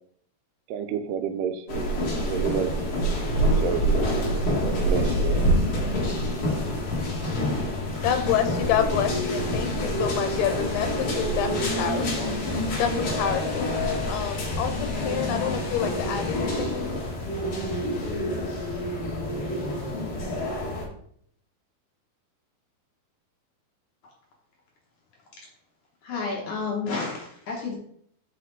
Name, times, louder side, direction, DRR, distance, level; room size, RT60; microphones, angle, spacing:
voice 1, 0.7-1.8 2.2-2.8 3.1-4.0 4.6-5.5, right 8 dB, 85° right, 7 dB, 2.7 m, -30 dB
sound 1, 1.7-20.8, equal, 45° left, 2.1 m, -27 dB
voice 2, 8.0-13.7 14.1-16.9, left 9 dB, 80° left, 8 dB, 2.7 m, -28 dB
voice 3, 26.0-27.8, left 4 dB, 60° left, -2 dB, 2.2 m, -30 dB
6.4 x 5.8 x 4.0 m, 0.65 s
omnidirectional pair, 4.5 m